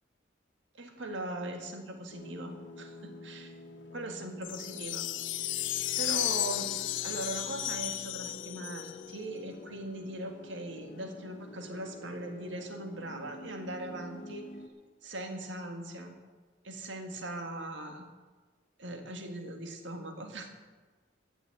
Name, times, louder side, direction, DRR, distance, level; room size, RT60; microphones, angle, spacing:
voice 1, 0.8-3.5 3.9-5.0 5.5-6.7 6.9-14.5 15.0-16.1 16.6-18.0 18.8-20.5, right 1 dB, 80° right, 4 dB, 1.8 m, -40 dB
sound 1, 2.1-14.7, left 2 dB, 70° left, 1.6 m, -48 dB
sound 2, 4.4-9.2, left 14 dB, 85° left, 0.5 m, -34 dB
15.0 x 6.5 x 8.1 m, 1.3 s
head